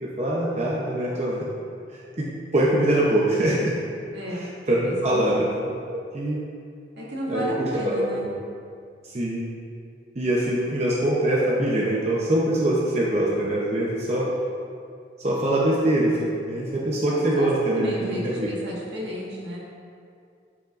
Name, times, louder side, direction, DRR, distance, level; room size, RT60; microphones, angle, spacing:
voice 1, 0.0-1.5 1.9-2.3 2.5-3.7 4.3-6.5 7.3-8.3 9.0-9.5 10.1-14.3 15.2-18.5, right 1 dB, 35° right, -5 dB, 0.8 m, -24 dB
voice 2, 4.1-4.5 4.9-5.4 7.0-8.3 17.0-17.5 17.7-19.6, equal, 75° right, -5 dB, 1.8 m, -33 dB
12.0 x 5.6 x 2.6 m, 2.4 s
head